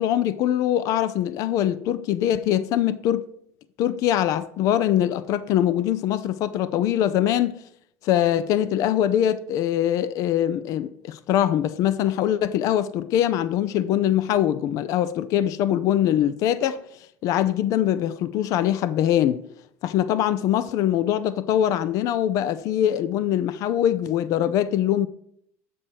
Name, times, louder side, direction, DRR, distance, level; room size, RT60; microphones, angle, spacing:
voice 1, 0.0-3.3 3.8-7.6 8.0-16.8 17.2-19.4 19.8-25.1, left 11 dB, 50° left, 0.5 m, -23 dB
7.7 x 6.5 x 4.3 m
supercardioid pair, 130°, 7 cm